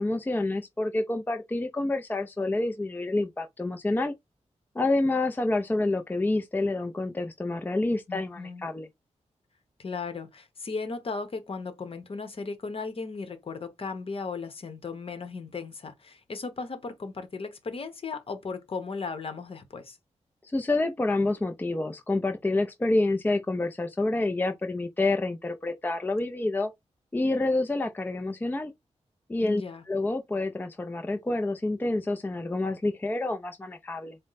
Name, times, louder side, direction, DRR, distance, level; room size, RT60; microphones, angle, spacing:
voice 1, 0.0-4.1 4.8-8.9 20.5-26.7 27.1-28.7 29.3-29.6 29.9-34.2, left 2 dB, 15° left, 0.4 m, -28 dB
voice 2, 8.1-8.6 9.8-20.0 29.4-29.8, left 4 dB, 50° left, 1.0 m, -36 dB
4.3 x 2.1 x 3.9 m
wide cardioid pair, 125°, 12 cm